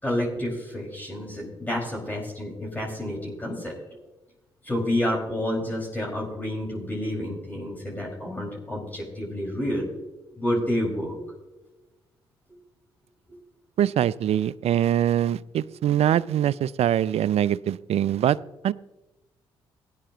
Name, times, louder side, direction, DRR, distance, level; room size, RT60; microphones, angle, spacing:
voice 1, 0.0-3.7 4.6-10.0 10.4-11.3, left 1 dB, 15° left, -4 dB, 5.3 m, -29 dB
voice 2, 13.8-18.4 18.6-18.7, right 10 dB, 55° right, 21 dB, 0.4 m, -23 dB
20.0 x 9.9 x 3.0 m, 1.1 s
hypercardioid pair, 40°, 13 cm